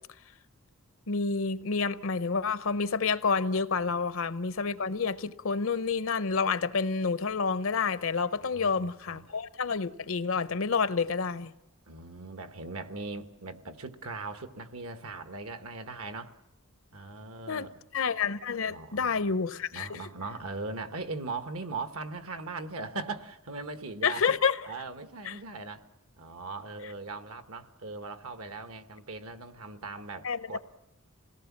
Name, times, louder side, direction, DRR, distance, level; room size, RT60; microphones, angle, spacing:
voice 1, 1.1-11.5 17.5-17.7 17.9-20.0 24.0-24.6 25.2-25.3 30.2-30.5, left 5 dB, 60° left, 14 dB, 0.7 m, -29 dB
voice 2, 8.4-9.2 11.8-16.3 16.9-17.8 18.7-19.4 19.7-24.3 24.7-25.9 26.2-30.6, right 3 dB, 70° right, 8 dB, 1.4 m, -39 dB
26.5 x 18.0 x 7.3 m, 0.90 s
head